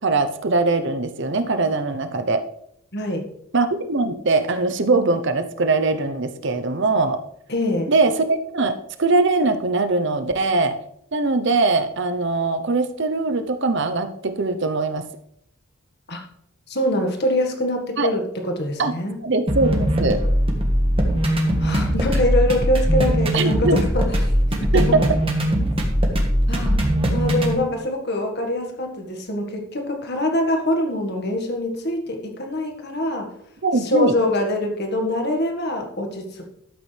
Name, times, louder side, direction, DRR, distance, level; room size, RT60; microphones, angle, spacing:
voice 1, 0.0-2.4 3.5-7.2 7.9-10.8 11.1-15.1 18.0-18.1 18.8-18.9 19.2-20.2 23.3-23.8 24.7-25.0 33.6-34.1, right 3 dB, 55° right, 9 dB, 0.8 m, -21 dB
voice 2, 2.9-3.3 7.5-7.9 16.1-16.2 16.7-19.2 21.6-24.3 24.7-24.9 26.5-26.8 27.1-33.3 33.8-36.5, left 1 dB, 50° left, 3 dB, 1.7 m, -24 dB
sound 1, 19.5-27.5, equal, 25° right, 1.6 m, -20 dB
12.0 x 8.3 x 3.4 m, 0.72 s
head